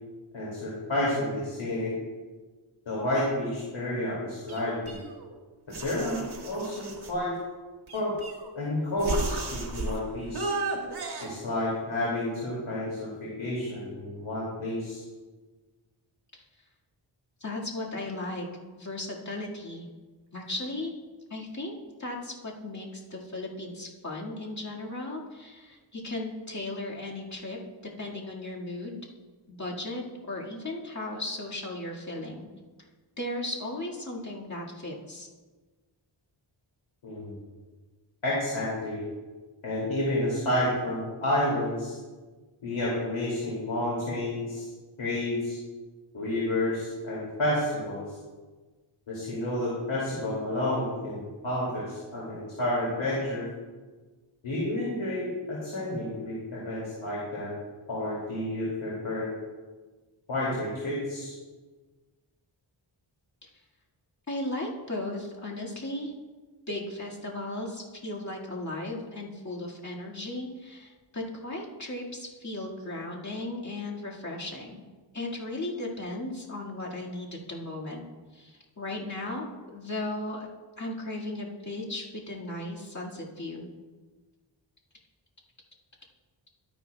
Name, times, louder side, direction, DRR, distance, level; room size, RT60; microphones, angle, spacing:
voice 1, 0.3-1.9 2.9-5.0 5.7-7.3 7.9-8.1 8.6-10.5 11.2-15.0 37.0-37.3 38.2-39.0 39.6-42.0 42.6-44.7 45.0-45.6 46.1-48.1 49.1-53.5 54.4-57.6 57.9-59.3 60.3-61.3, left 1 dB, 85° left, -6 dB, 2.5 m, -30 dB
sound 1, 4.5-5.3 5.7-7.2 7.9-8.6 9.0-10.0 10.3-11.3, right 3 dB, 55° right, 1.7 m, -34 dB
voice 2, 17.4-18.5 18.8-19.9 20.3-20.9 21.3-21.7 22.0-27.6 28.0-29.0 29.5-32.5 33.2-35.3 63.4-63.5 64.3-66.1 66.7-74.8 75.1-78.0 78.3-79.5 79.7-80.5 80.8-83.7, left 2 dB, 35° left, -4 dB, 2.0 m, -36 dB
12.5 x 9.9 x 2.3 m, 1.3 s
wide cardioid pair, 95°, 46 cm